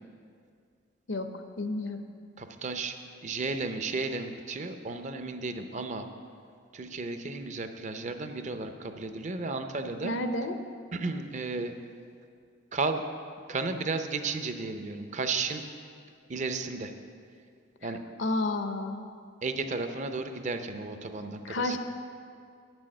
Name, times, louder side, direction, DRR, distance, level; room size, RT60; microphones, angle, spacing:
voice 1, 1.1-2.0 10.0-10.6 18.2-19.0 21.4-21.8, left 2 dB, 75° left, 7 dB, 0.7 m, -31 dB
voice 2, 2.4-3.0 3.2-6.1 6.7-10.1 10.9-11.7 12.7-13.0 13.5-15.7 16.3-16.9 17.8-18.0 19.4-21.8, right 3 dB, 40° right, 7 dB, 0.5 m, -33 dB
8.9 x 6.2 x 7.6 m, 2.3 s
head